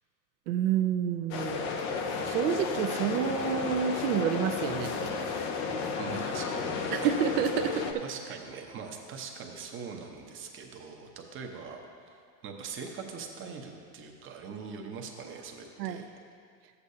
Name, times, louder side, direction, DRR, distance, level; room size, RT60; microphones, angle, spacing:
voice 1, 0.5-1.7 2.2-5.0 6.9-8.0 15.8-16.0, right 8 dB, 75° right, 9 dB, 0.8 m, -29 dB
sound 1, 1.3-7.9, left 4 dB, 25° left, 0.3 m, -33 dB
voice 2, 6.0-7.1 7.6-16.1, right 5 dB, 25° right, 3 dB, 0.8 m, -42 dB
12.5 x 8.2 x 2.7 m, 2.2 s
supercardioid pair, 140°, 48 cm